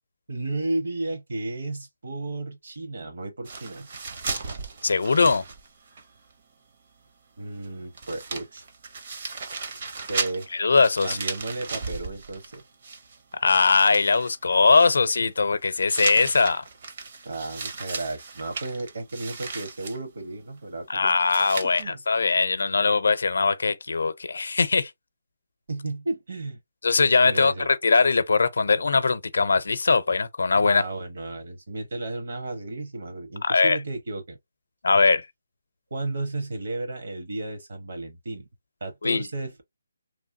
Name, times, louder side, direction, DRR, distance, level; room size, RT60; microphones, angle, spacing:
voice 1, 0.3-3.9 7.4-8.6 10.1-10.5 11.0-12.6 17.2-21.1 21.6-22.0 25.7-26.6 27.2-27.7 30.6-34.4 35.9-38.5 38.8-39.6, right 2 dB, 65° right, 1.2 m, -33 dB
sound 1, 3.4-6.0 6.3-6.4 7.6-7.7 7.9-13.3 13.7-14.3 15.9-20.0 21.3-21.8, right 4 dB, 40° right, 0.6 m, -35 dB
voice 2, 4.8-5.4 10.5-11.2 13.4-16.6 20.9-24.9 26.8-30.8 33.4-33.8 34.8-35.3 39.0-39.3, left 4 dB, 75° left, 0.5 m, -21 dB
3.1 x 2.3 x 2.6 m
hypercardioid pair, 170°, 0 cm